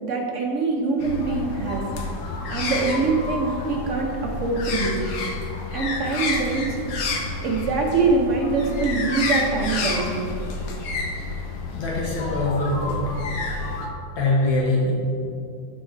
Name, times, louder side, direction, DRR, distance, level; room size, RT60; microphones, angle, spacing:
voice 1, 0.0-1.8 2.5-5.1 5.7-6.8 7.4-10.3, right 4 dB, 80° right, 0 dB, 0.6 m, -24 dB
sound 1, 1.0-13.9, left 3 dB, 60° left, 1.0 m, -29 dB
voice 2, 11.7-13.0 14.2-14.9, left 2 dB, 80° left, -4 dB, 2.1 m, -23 dB
6.4 x 4.6 x 4.5 m, 2.6 s
omnidirectional pair, 2.1 m